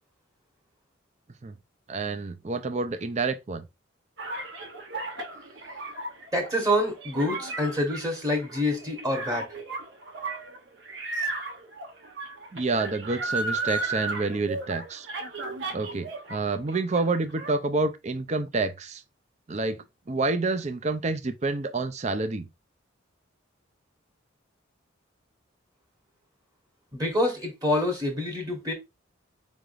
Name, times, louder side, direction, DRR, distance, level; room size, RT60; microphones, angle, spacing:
voice 1, 1.9-3.6 12.5-15.1 15.7-19.0 19.5-19.8 20.1-22.5, right 3 dB, 35° right, 0.5 m, -28 dB
sound 1, 4.2-16.4 16.7-17.5, right 3 dB, 65° right, 1.0 m, -34 dB
voice 2, 6.3-9.5 26.9-28.7, left 1 dB, 20° right, 1.2 m, -26 dB
4.7 x 3.5 x 2.5 m
head